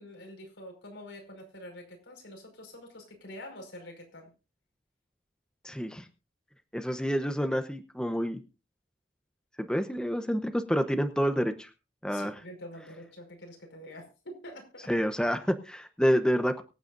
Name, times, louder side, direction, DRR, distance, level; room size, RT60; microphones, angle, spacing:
voice 1, 0.0-4.3 12.1-14.9, left 1 dB, 85° left, 3 dB, 5.3 m, -46 dB
voice 2, 5.6-6.0 6.7-8.4 9.6-11.7 12.0-12.4 14.9-16.6, equal, 5° left, 8 dB, 0.8 m, -28 dB
24.0 x 9.0 x 2.6 m, 0.31 s
head